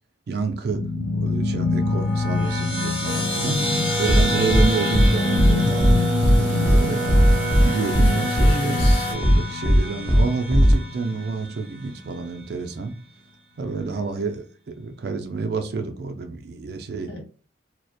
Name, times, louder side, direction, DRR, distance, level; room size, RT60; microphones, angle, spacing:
voice 1, 0.3-0.8 1.2-3.6 4.0-7.3 7.6-8.7 9.1-12.9 13.6-17.1, right 4 dB, 55° right, 0.4 m, -28 dB
sound 1, 0.7-11.5, left 2 dB, 30° left, 0.9 m, -25 dB
sound 2, 3.1-9.1, right 2 dB, 85° left, 1.0 m, -30 dB
voice 2, 3.4-4.4 8.1-9.1 17.1-17.2, equal, 65° left, 0.8 m, -31 dB
sound 3, 4.1-4.2 4.5-4.6 4.9-5.1 5.4-5.5 5.8-5.9 6.2-6.4 6.7-6.8 7.1-7.6 7.9-8.1 8.4-8.5 8.8-8.9 9.2-9.4 9.7-9.8 10.1-10.2 10.5-10.7, equal, 15° left, 0.4 m, -16 dB
2.4 x 2.1 x 2.6 m
head